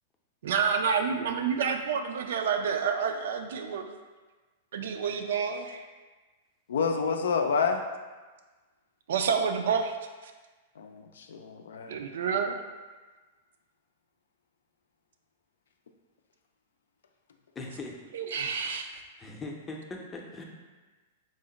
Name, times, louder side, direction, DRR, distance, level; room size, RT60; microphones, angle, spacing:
voice 1, 0.4-3.9 4.7-5.9 9.1-9.9 11.9-12.6 18.1-18.9, right 6 dB, 75° right, 5 dB, 0.4 m, -28 dB
voice 2, 6.7-7.8 10.8-12.0, left 5 dB, 85° left, 5 dB, 0.4 m, -28 dB
voice 3, 17.6-17.9 18.8-20.4, left 2 dB, 15° left, 0 dB, 0.5 m, -41 dB
3.7 x 2.1 x 3.8 m, 1.3 s
hypercardioid pair, 130°, 0 cm